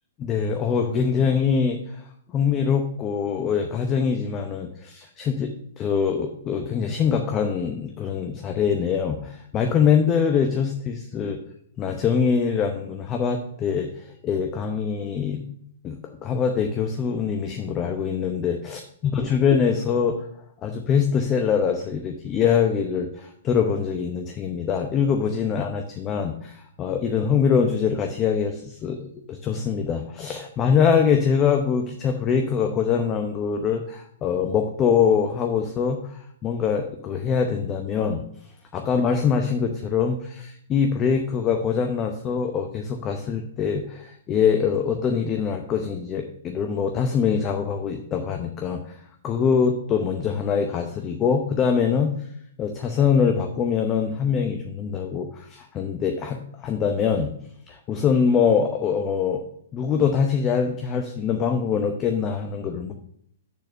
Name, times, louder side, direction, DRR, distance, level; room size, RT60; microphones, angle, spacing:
voice 1, 0.2-2.0 2.3-5.5 5.8-11.4 11.8-15.4 15.8-20.2 20.6-38.2 38.7-48.9 49.2-52.1 52.6-57.3 57.7-59.4 59.7-62.9, left 6 dB, 25° left, 4 dB, 0.7 m, -23 dB
6.7 x 4.1 x 6.4 m, 0.68 s
hypercardioid pair, 130°, 0 cm